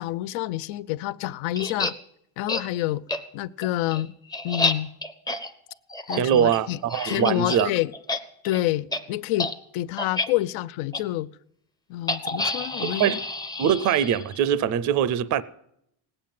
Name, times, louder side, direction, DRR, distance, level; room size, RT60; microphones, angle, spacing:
voice 1, 0.0-2.0 2.4-3.0 3.3-4.1 4.4-4.9 6.1-6.8 7.0-7.9 8.4-11.3 11.9-13.2, left 15 dB, 80° left, 0.6 m, -28 dB
sound 1, 1.5-1.9 2.5-2.6 3.1-3.2 3.6-7.6 7.9-8.2 8.4-8.6 8.9-9.0 9.4-9.5 10.0-10.3 10.9-11.0 12.1-14.4, left 2 dB, 10° left, 0.5 m, -29 dB
voice 2, 6.1-7.7 12.8-13.2 13.6-15.4, right 9 dB, 40° right, 0.5 m, -22 dB
18.5 x 9.0 x 7.5 m
cardioid pair, 170°, 48 cm